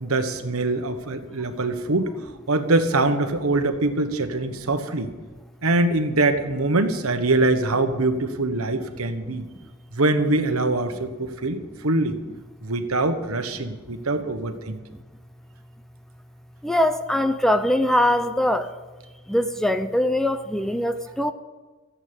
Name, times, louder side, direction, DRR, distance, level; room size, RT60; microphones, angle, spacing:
voice 1, 0.0-2.1 2.5-5.1 5.6-9.4 9.9-12.2 12.6-14.8, right 2 dB, 75° right, 8 dB, 1.3 m, -23 dB
voice 2, 9.3-9.7 16.6-18.7 19.3-21.3, left 1 dB, ahead, 10 dB, 0.5 m, -22 dB
14.5 x 8.4 x 8.9 m, 1.3 s
head